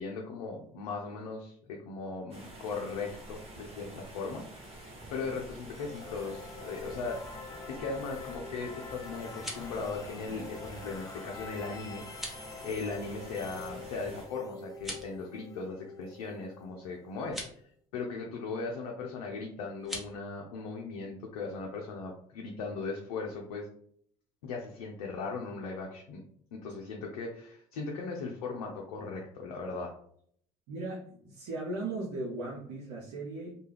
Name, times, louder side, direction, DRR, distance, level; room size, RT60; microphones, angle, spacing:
voice 1, 0.0-7.4 7.7-12.0 12.6-17.4 17.9-23.7 24.4-26.2 26.5-29.9, left 4 dB, 90° left, 0 dB, 0.5 m, -38 dB
sound 1, 2.3-14.3, right 1 dB, 30° right, 1.1 m, -48 dB
sound 2, 5.8-17.6, left 4 dB, 20° left, 0.5 m, -46 dB
sound 3, 9.2-9.8 12.1-12.5 14.7-15.2 17.2-17.6 19.8-20.1, equal, ahead, 0.9 m, -41 dB
voice 2, 30.7-33.6, right 2 dB, 80° right, -3 dB, 0.6 m, -37 dB
2.3 x 2.2 x 3.2 m, 0.63 s
hypercardioid pair, 65°, 19 cm